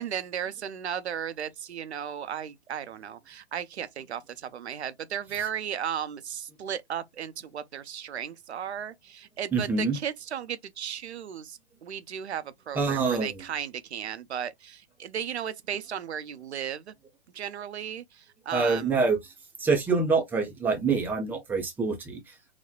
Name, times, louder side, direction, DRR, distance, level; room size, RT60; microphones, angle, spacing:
voice 1, 0.0-16.9 17.3-18.9, right 9 dB, 75° right, 0.6 m, -35 dB
voice 2, 9.5-10.0 12.7-13.4 18.5-19.2 19.6-22.5, right 4 dB, 5° right, 0.4 m, -26 dB
4.1 x 2.1 x 2.2 m
hypercardioid pair, 120°, 33 cm